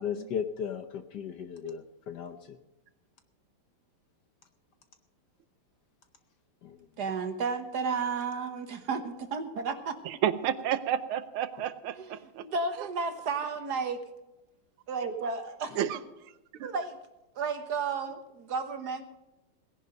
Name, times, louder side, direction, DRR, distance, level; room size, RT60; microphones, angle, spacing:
voice 1, 0.0-2.6 6.6-6.9, left 8 dB, 65° left, 9 dB, 1.1 m, -36 dB
voice 2, 7.0-10.0 11.9-12.1 12.4-14.0 14.9-15.8 16.6-17.0 17.4-19.0, right 5 dB, 55° right, 8 dB, 1.5 m, -32 dB
voice 3, 10.1-12.5 12.8-12.9 15.8-16.0, right 10 dB, 80° right, 13 dB, 1.6 m, -31 dB
17.5 x 11.0 x 5.2 m, 1.0 s
omnidirectional pair, 2.4 m